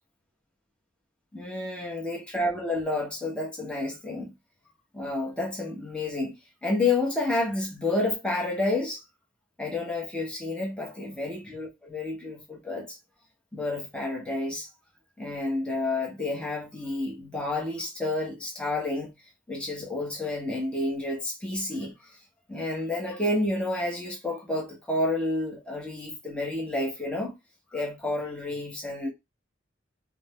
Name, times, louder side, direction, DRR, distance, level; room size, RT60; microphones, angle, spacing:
voice 1, 1.3-4.3 4.9-6.4 6.6-9.0 9.6-12.9 13.5-14.7 15.2-19.1 19.5-22.2 22.5-27.4 27.7-29.1, left 2 dB, 5° left, 1.0 m, -30 dB
3.5 x 2.2 x 3.5 m
head